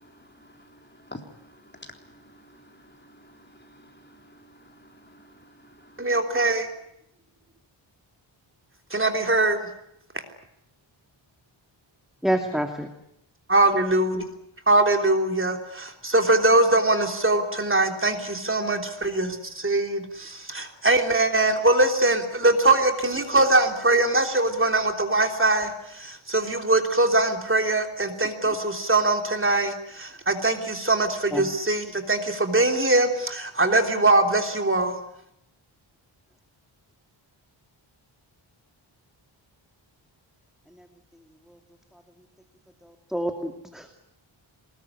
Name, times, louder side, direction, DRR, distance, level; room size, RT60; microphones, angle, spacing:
voice 1, 0.0-6.1, left 1 dB, 20° left, 3.7 m, -49 dB
voice 2, 6.0-6.7 8.9-9.7 13.5-14.2 14.7-35.0, right 2 dB, 25° right, 3.3 m, -22 dB
voice 3, 12.2-12.9 31.3-31.4 43.1-43.9, equal, ahead, 2.4 m, -27 dB
23.5 x 21.0 x 9.7 m
wide cardioid pair, 105°, 48 cm